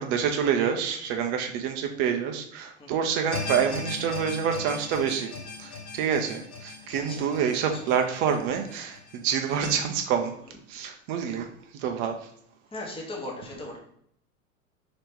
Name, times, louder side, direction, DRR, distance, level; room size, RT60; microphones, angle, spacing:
voice 1, 0.0-5.3 5.6-10.3 10.7-11.5 11.7-12.3, right 7 dB, 30° right, 4 dB, 0.4 m, -27 dB
voice 2, 2.8-3.1 6.9-7.2 7.7-7.9 8.8-9.0 10.2-10.3 12.7-13.8, left 2 dB, 15° left, -1 dB, 0.9 m, -38 dB
sound 1, 3.3-9.7, left 4 dB, 70° left, 1.2 m, -38 dB
2.9 x 2.8 x 3.5 m, 0.67 s
figure-of-eight pair, 90°, 43 cm